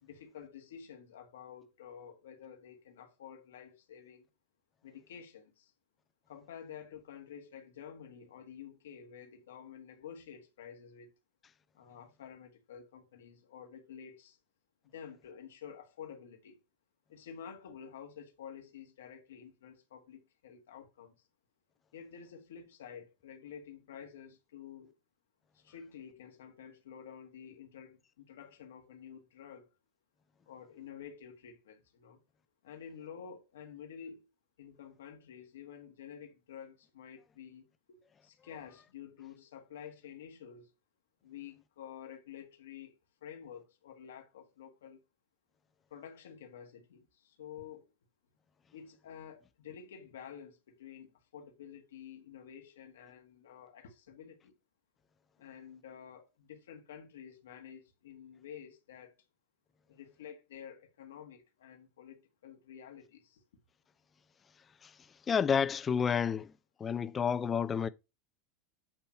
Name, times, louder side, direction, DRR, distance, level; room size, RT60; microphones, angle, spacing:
voice 1, 0.0-4.3 4.8-5.7 6.3-11.1 11.7-14.4 14.9-16.6 17.1-21.1 21.9-24.9 25.5-29.7 30.5-32.2 32.6-34.2 34.6-40.7 41.2-45.0 45.9-47.9 48.7-54.5 55.4-59.1 59.9-63.4, left 8 dB, 85° left, 1.6 m, -50 dB
voice 2, 65.3-66.5 66.8-67.9, left 7 dB, 25° left, 0.6 m, -29 dB
8.5 x 2.9 x 5.8 m
hypercardioid pair, 95°, 0 cm